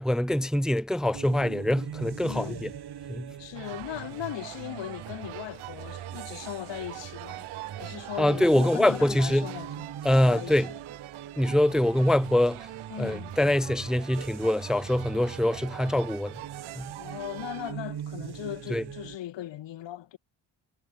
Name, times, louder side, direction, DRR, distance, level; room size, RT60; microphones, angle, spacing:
voice 1, 0.0-2.7 3.1-3.3 8.2-9.5 10.0-10.7 11.4-12.7 13.0-16.4 16.7-16.9 18.7-18.8, left 1 dB, ahead, 0.6 m, -24 dB
sound 1, 1.1-19.2, right 9 dB, 50° right, 3.2 m, -42 dB
voice 2, 2.2-2.6 3.4-7.5 7.8-9.9 10.3-10.5 12.9-13.3 17.0-20.2, left 13 dB, 65° left, 1.9 m, -38 dB
sound 2, 3.5-17.7, right 19 dB, 85° right, 2.9 m, -44 dB
cardioid pair, 80°, 48 cm